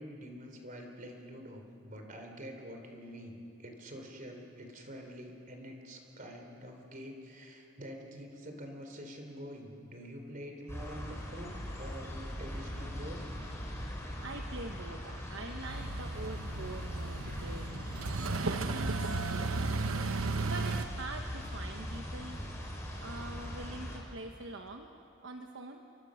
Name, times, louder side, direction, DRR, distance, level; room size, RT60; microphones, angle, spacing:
voice 1, 0.0-13.2, equal, 40° right, 3 dB, 3.7 m, -46 dB
sound 1, 10.7-24.0, equal, 15° left, 4.3 m, -41 dB
voice 2, 14.2-17.7 18.4-22.4 23.0-24.9 25.2-25.8, right 2 dB, 60° right, 3 dB, 1.2 m, -44 dB
sound 2, 15.7-20.8, right 3 dB, 90° right, 1.0 m, -34 dB
29.0 x 23.5 x 6.5 m, 2.7 s
head